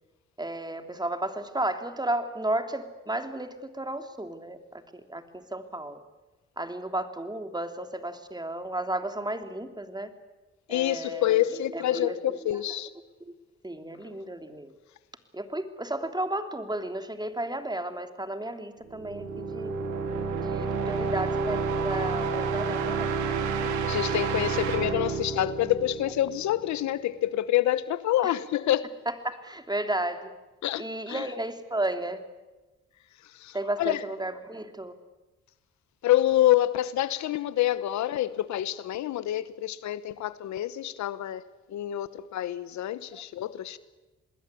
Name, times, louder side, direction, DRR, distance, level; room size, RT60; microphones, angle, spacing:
voice 1, 0.4-6.0 6.6-10.1 10.7-12.5 13.3-13.4 13.6-14.7 15.3-19.7 20.4-23.2 28.2-28.3 29.1-30.3 30.8-32.2 33.5-34.9, right 1 dB, 15° right, 3.2 m, -33 dB
voice 2, 10.7-12.9 23.8-28.9 30.6-31.3 33.2-34.0 36.0-43.8, left 13 dB, 75° left, 1.0 m, -27 dB
sound 1, 18.9-26.6, right 4 dB, 90° right, 3.0 m, -29 dB
27.0 x 20.5 x 8.5 m
supercardioid pair, 55°, 29 cm